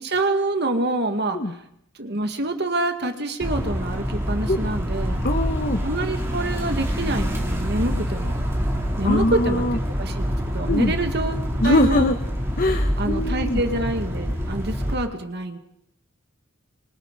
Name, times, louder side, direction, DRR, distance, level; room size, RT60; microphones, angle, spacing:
voice 1, 0.0-1.4 2.0-5.2 5.8-8.3 9.0-11.3 11.6-12.1 13.0-15.6, right 2 dB, 50° right, 6 dB, 2.0 m, -26 dB
sound 1, 3.4-14.9, equal, 15° right, 3.3 m, -26 dB
voice 2, 5.2-5.8 9.0-9.8 10.7-11.0 11.6-12.2 12.6-13.6, left 1 dB, 40° left, 6 dB, 1.0 m, -22 dB
27.5 x 25.0 x 4.1 m, 0.75 s
head